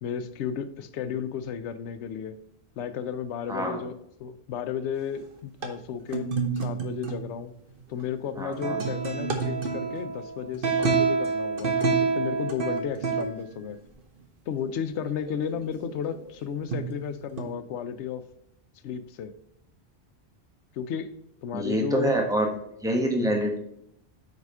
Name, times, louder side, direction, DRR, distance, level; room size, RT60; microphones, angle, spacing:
voice 1, 0.0-2.4 2.8-3.9 4.2-7.5 7.9-13.8 14.5-18.2 18.8-19.3 20.7-21.1 21.4-22.2 23.2-23.4, left 7 dB, 90° left, 11 dB, 0.9 m, -33 dB
voice 2, 3.5-3.8 8.4-8.8 21.5-22.5 22.8-23.6, right 1 dB, 5° right, 1 dB, 1.1 m, -26 dB
sound 1, 5.6-5.7 6.1-7.3 8.0-8.1 8.6-13.2 15.1-16.3 16.7-17.0 17.4-17.5, right 5 dB, 55° right, 1.0 m, -27 dB
5.0 x 4.8 x 5.4 m, 0.73 s
omnidirectional pair, 1.1 m